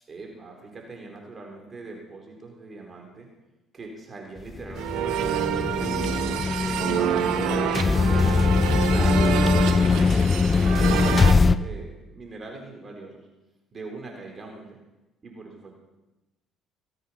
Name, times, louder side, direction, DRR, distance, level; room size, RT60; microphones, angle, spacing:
voice 1, 0.1-3.3 3.7-6.1 6.5-13.3 13.7-14.8 15.2-15.7, right 3 dB, 35° right, 1 dB, 4.0 m, -41 dB
sound 1, 4.5-11.6, left 4 dB, 30° left, 0.6 m, -21 dB
sound 2, 4.8-11.3, right 10 dB, 75° right, 1.0 m, -28 dB
19.0 x 8.3 x 5.8 m, 1.0 s
supercardioid pair, 70°, 0 cm